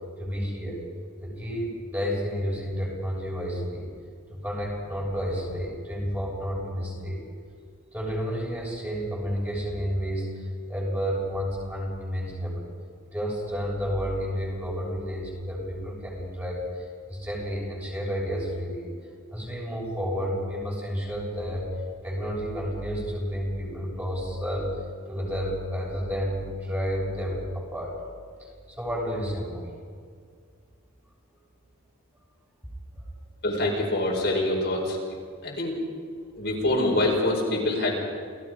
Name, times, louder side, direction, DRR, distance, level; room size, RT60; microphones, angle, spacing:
voice 1, 0.2-0.8 1.2-3.9 4.3-7.2 7.9-12.7 13.1-18.9 19.3-21.7 22.0-24.7 25.1-28.0 28.4-29.7 32.9-33.1 36.4-36.5, equal, 10° right, -4 dB, 6.5 m, -31 dB
voice 2, 33.4-35.0 35.4-35.8 36.3-37.9, left 1 dB, 50° left, -2 dB, 5.1 m, -25 dB
30.0 x 18.0 x 5.2 m, 2.1 s
head